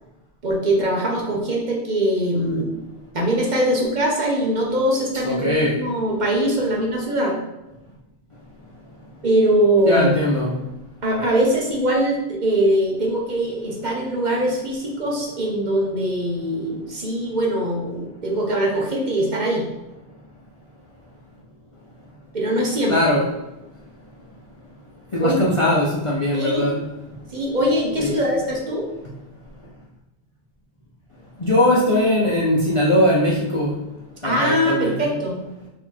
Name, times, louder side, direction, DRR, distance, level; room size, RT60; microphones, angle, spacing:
voice 1, 0.4-2.7 3.1-7.3 9.2-10.1 11.0-19.6 22.3-22.9 25.2-25.4 26.3-26.7 27.3-28.9 34.2-35.4, right 1 dB, 45° right, -2 dB, 0.9 m, -22 dB
voice 2, 5.2-5.8 9.9-10.5 22.9-23.3 25.1-26.8 28.0-28.2 31.4-33.7 34.2-35.1, left 1 dB, 40° left, -5 dB, 0.5 m, -20 dB
4.0 x 2.9 x 4.4 m, 0.98 s
omnidirectional pair, 1.1 m